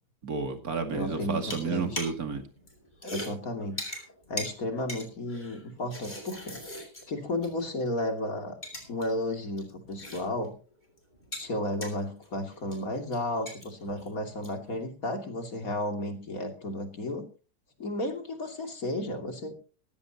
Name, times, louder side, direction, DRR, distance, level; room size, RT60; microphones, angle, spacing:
voice 1, 0.2-2.4, right 5 dB, 60° right, 6 dB, 2.8 m, -31 dB
voice 2, 0.9-2.0 3.0-3.8 4.3-8.6 8.9-10.5 11.3-17.3 17.8-19.5, left 1 dB, 55° left, 5 dB, 3.2 m, -33 dB
sound 1, 1.4-2.3 2.6-7.7 8.0-8.1 8.5-9.1 9.3-10.6 10.8-14.7, left 1 dB, 25° left, 5.6 m, -41 dB
16.5 x 16.0 x 3.0 m, 0.36 s
omnidirectional pair, 1.8 m